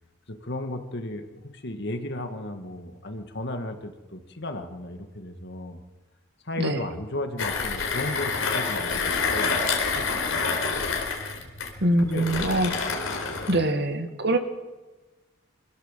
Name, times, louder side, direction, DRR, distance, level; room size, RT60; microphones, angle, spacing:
voice 1, 0.3-5.8 6.4-9.6 9.9-10.9 11.4-11.5 12.0-12.4 13.5-13.6, left 1 dB, 55° left, 6 dB, 2.1 m, -35 dB
Mechanisms, 7.4-13.6, left 4 dB, 75° left, 4.3 m, -27 dB
voice 2, 11.8-12.9 13.5-14.4, right 1 dB, 50° right, 7 dB, 2.1 m, -24 dB
26.0 x 16.5 x 7.6 m, 1.2 s
head